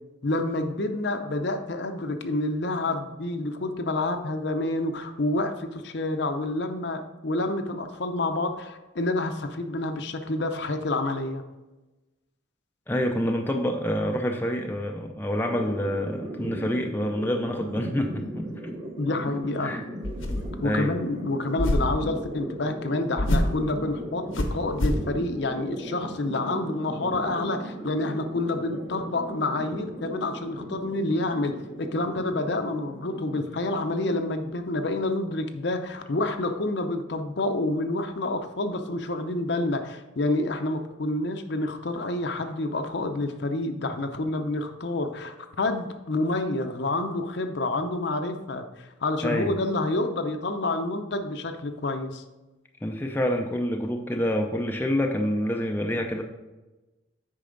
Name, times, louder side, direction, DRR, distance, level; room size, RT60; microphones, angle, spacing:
voice 1, 0.2-11.4 19.0-19.8 20.6-52.2, left 2 dB, 55° left, 7 dB, 0.6 m, -28 dB
voice 2, 12.9-18.7 19.6-19.8 20.6-20.9 49.2-49.5 52.8-56.2, equal, 10° left, 2 dB, 0.4 m, -27 dB
sound 1, 15.4-34.9, right 1 dB, 20° right, 1.1 m, -38 dB
sound 2, 20.0-20.6 21.6-22.0 23.2-23.6 24.3-25.1, left 1 dB, 75° left, 1.0 m, -26 dB
8.4 x 5.5 x 3.8 m, 1.1 s
head